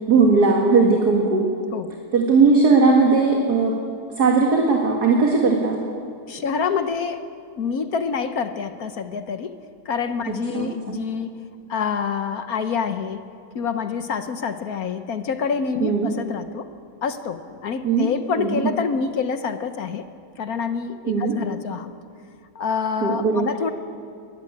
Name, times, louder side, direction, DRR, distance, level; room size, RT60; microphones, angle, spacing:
voice 1, 0.1-1.5 2.1-3.7 4.2-5.8 10.5-11.0 15.8-16.1 17.8-18.1 18.4-18.7 21.1-21.4 23.0-23.5, right 4 dB, 50° right, 0 dB, 2.3 m, -18 dB
voice 2, 1.7-2.1 6.3-7.3 7.6-9.6 9.8-11.4 11.7-13.2 13.5-16.7 17.0-20.1 20.4-21.9 22.5-23.7, left 6 dB, 55° left, 9 dB, 1.2 m, -27 dB
21.5 x 15.0 x 9.7 m, 2.3 s
omnidirectional pair, 2.3 m